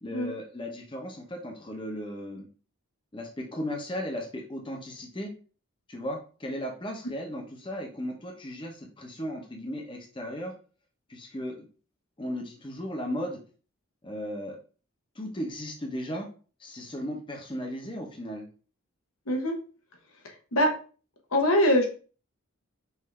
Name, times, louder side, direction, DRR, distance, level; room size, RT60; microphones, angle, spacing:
voice 1, 0.0-2.5 3.1-5.3 5.9-10.5 11.1-11.7 12.2-13.4 14.0-14.6 15.1-16.3 16.6-18.5, equal, 25° left, 1 dB, 0.8 m, -36 dB
voice 2, 19.3-19.6 20.2-20.7 21.3-21.9, equal, 90° left, 2 dB, 1.1 m, -23 dB
5.6 x 2.6 x 3.2 m, 0.38 s
head